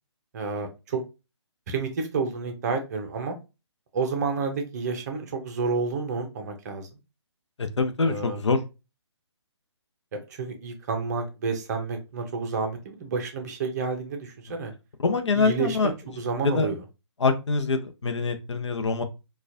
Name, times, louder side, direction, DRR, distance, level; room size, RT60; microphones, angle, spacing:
voice 1, 0.3-1.0 1.7-3.4 3.9-6.9 8.0-8.4 10.1-14.7 15.3-15.8 16.2-16.8, right 4 dB, 35° right, 0.7 m, -30 dB
voice 2, 7.6-8.6 15.0-15.9 16.4-16.7 17.2-19.0, left 4 dB, 75° left, 0.7 m, -24 dB
4.2 x 2.4 x 2.5 m
figure-of-eight pair, 145°, 15 cm